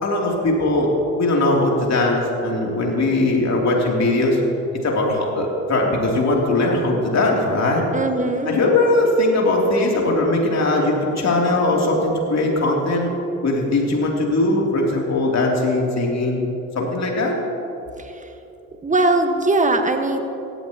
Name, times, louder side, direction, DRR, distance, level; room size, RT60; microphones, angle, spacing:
voice 1, 0.0-0.9 1.2-4.4 4.8-7.8 8.5-13.1 13.4-16.4 16.7-17.3, left 2 dB, 45° left, -1 dB, 3.0 m, -20 dB
voice 2, 7.9-8.5 18.0-18.3 18.8-20.2, right 2 dB, 20° right, 6 dB, 1.4 m, -20 dB
16.5 x 13.0 x 2.9 m, 3.0 s
hypercardioid pair, 55°, 37 cm